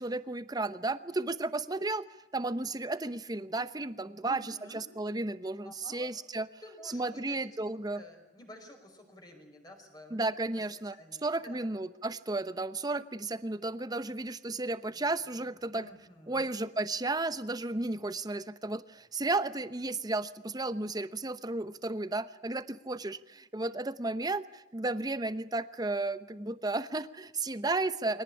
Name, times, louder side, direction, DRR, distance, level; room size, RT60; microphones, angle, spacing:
voice 1, 0.0-2.1 2.3-6.5 6.9-8.0 10.1-11.0 11.2-15.9 16.3-28.2, right 2 dB, 20° right, 13 dB, 0.9 m, -33 dB
voice 2, 4.2-4.8 5.6-6.1 6.6-7.5 7.8-10.2 10.9-11.7 14.9-15.0 15.7-16.5, left 1 dB, 25° left, 3 dB, 5.3 m, -51 dB
23.5 x 18.5 x 9.9 m, 0.95 s
head